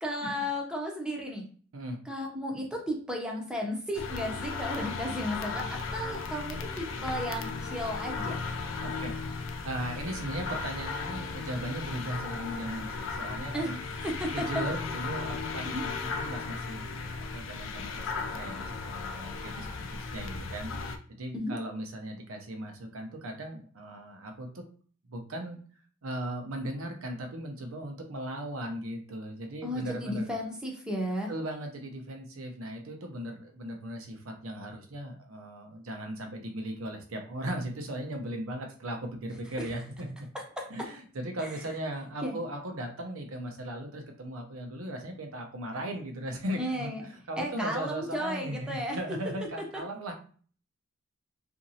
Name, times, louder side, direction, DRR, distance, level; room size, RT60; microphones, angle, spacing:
voice 1, 0.0-1.5 2.1-8.4 13.5-14.5 15.6-15.8 21.3-21.6 29.6-31.3 39.6-39.7 40.6-40.7 41.4-41.6 42.2-42.3 46.6-47.0 47.4-49.2, equal, 5° right, 0 dB, 0.6 m, -34 dB
sound 1, 3.9-21.0, left 4 dB, 65° left, 0.4 m, -36 dB
voice 2, 8.8-9.1 9.6-13.8 14.3-20.7 21.2-24.6 25.1-25.6 26.0-30.3 31.3-40.3 40.7-46.9 47.3-50.1, right 1 dB, 85° right, 3 dB, 0.7 m, -37 dB
2.9 x 2.6 x 2.7 m, 0.44 s
head